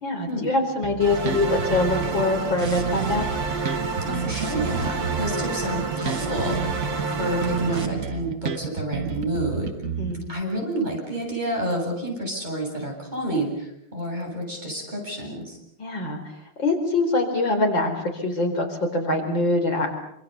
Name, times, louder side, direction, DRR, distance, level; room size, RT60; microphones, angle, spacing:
voice 1, 0.0-3.3 10.0-10.2 15.8-16.2 16.6-19.9, left 2 dB, 70° left, 4 dB, 5.1 m, -24 dB
Bass guitar, 0.8-2.3 2.6-7.1 7.4-10.4, right 7 dB, 45° right, 1.4 m, -31 dB
sound 1, 1.0-7.9, right 3 dB, 70° right, 3.5 m, -29 dB
voice 2, 4.1-6.9 7.2-9.7 10.3-15.6, right 1 dB, 20° right, 0 dB, 8.3 m, -29 dB
27.5 x 27.0 x 6.9 m, 0.77 s
omnidirectional pair, 2.1 m